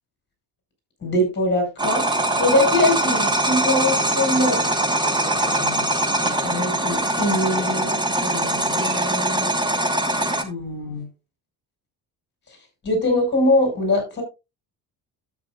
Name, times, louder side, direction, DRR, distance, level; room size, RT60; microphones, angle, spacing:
voice 1, 1.0-4.6 5.4-5.9 6.2-9.6 10.4-11.1 12.8-14.2, left 1 dB, 30° left, 5.7 m, -23 dB
sound 1, 1.8-10.4, right 1 dB, 10° right, 1.1 m, -22 dB
12.0 x 8.5 x 2.4 m
cardioid pair, 135°, 38 cm